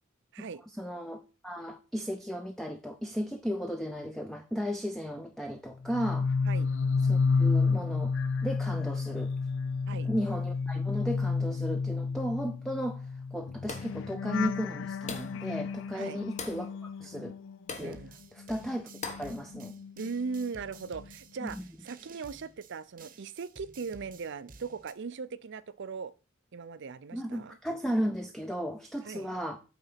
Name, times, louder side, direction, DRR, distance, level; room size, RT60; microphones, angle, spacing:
voice 1, 0.8-6.3 7.0-8.1 8.4-9.3 10.0-13.0 13.3-17.3 17.8-18.0 18.3-19.7 21.4-21.6 27.1-29.6, equal, ahead, 0.6 m, -35 dB
sound 1, 5.8-18.1 18.4-20.5 20.8-21.1, left 4 dB, 65° left, 0.4 m, -31 dB
sound 2, 13.7-14.0 15.1-15.4 16.4-16.7 17.7-18.0 19.0-19.3, left 4 dB, 35° left, 1.3 m, -40 dB
sound 3, 17.7-24.9, right 4 dB, 45° right, 0.9 m, -53 dB
voice 2, 17.8-18.1 20.0-26.1 26.5-27.6 29.0-29.3, right 5 dB, 60° right, 0.5 m, -39 dB
8.9 x 4.0 x 5.7 m
head